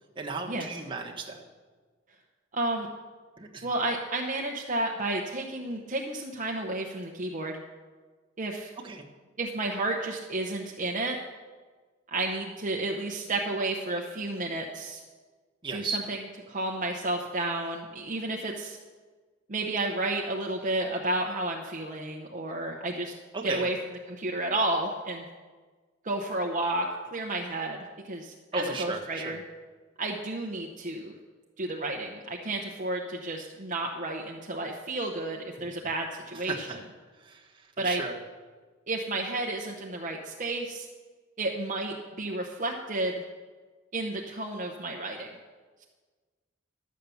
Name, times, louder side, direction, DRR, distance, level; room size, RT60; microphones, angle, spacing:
voice 1, 0.2-1.4 3.4-3.7 8.8-9.0 15.6-16.0 23.3-23.7 28.5-29.3 35.6-35.7 36.3-36.8 37.2-37.4 37.8-38.2, right 3 dB, 25° right, 0 dB, 1.3 m, -35 dB
voice 2, 2.5-2.9 3.6-7.6 8.4-8.7 9.4-11.2 12.1-15.0 15.7-18.8 19.5-23.1 23.4-23.8 24.1-25.2 26.0-26.9 27.1-29.4 30.0-31.1 31.6-36.8 37.8-38.0 38.9-40.9 41.4-43.2 43.9-45.3, right 2 dB, 40° right, 1 dB, 0.9 m, -31 dB
12.0 x 7.4 x 7.0 m, 1.4 s
head